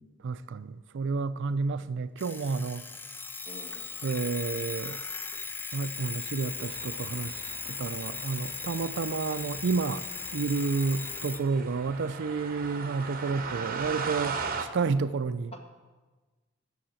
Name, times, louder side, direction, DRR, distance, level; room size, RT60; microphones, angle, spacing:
voice 1, 0.2-2.9 4.0-5.0 5.7-7.4 7.7-10.1 10.3-15.5, right 4 dB, 60° right, 0.4 m, -30 dB
Alarm, 2.2-11.4, left 5 dB, 10° left, 0.4 m, -38 dB
voice 2, 3.5-3.9 15.5-15.6, right 1 dB, 30° left, 1.8 m, -47 dB
sound 1, 6.0-14.6, right 5 dB, 45° right, 0.9 m, -39 dB
11.5 x 7.2 x 7.6 m
head